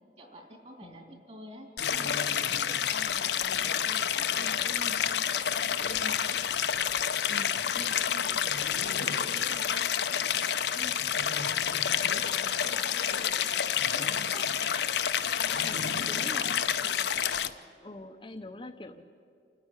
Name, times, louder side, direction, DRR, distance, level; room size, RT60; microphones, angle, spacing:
voice 1, 0.2-6.4 7.7-11.0 12.1-14.5 15.1-17.4, equal, 35° right, 2 dB, 3.3 m, -48 dB
voice 2, 0.8-1.2 7.3-7.6 11.9-12.5 13.0-13.1 15.3-16.6 17.8-19.0, left 2 dB, 30° left, 6 dB, 0.7 m, -45 dB
Stream, 1.8-17.5, left 8 dB, 80° left, 0.7 m, -29 dB
28.5 x 9.6 x 9.8 m, 2.4 s
head